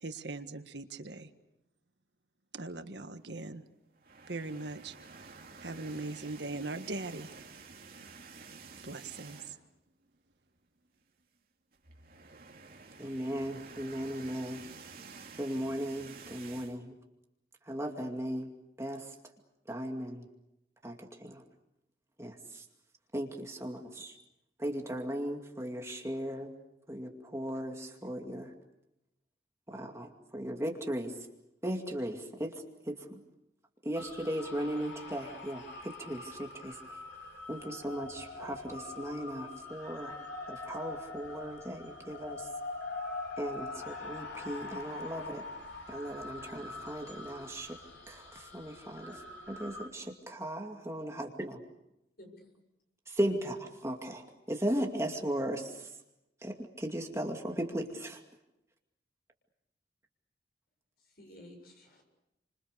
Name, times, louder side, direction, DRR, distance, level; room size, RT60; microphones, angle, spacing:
voice 1, 0.0-1.3 2.5-3.6 4.3-4.9 5.6-7.3 8.8-9.6, right 3 dB, 75° right, 8 dB, 1.6 m, -40 dB
sound 1, 4.0-9.8 10.1-10.3 10.6-10.7 11.7-16.8, right 4 dB, 55° right, 2.7 m, -50 dB
voice 2, 13.0-14.6 15.4-17.0 17.7-18.5 18.8-19.1 19.7-20.3 20.8-21.4 22.2-22.7 23.1-24.2 24.6-26.5 26.9-28.5 29.7-31.1 31.6-33.2 33.8-37.0 37.5-40.2 40.5-42.5 43.4-45.4 45.9-47.8 48.1-51.6 53.1-53.6 53.8-55.9 56.4-58.2, equal, 15° right, 2 dB, 2.4 m, -37 dB
sound 2, 33.9-49.9, left 2 dB, 85° left, 4.3 m, -44 dB
voice 3, 52.2-52.6 53.3-53.5 61.0-62.0, left 1 dB, 55° left, 2 dB, 7.4 m, -53 dB
29.5 x 26.0 x 6.8 m, 0.88 s
head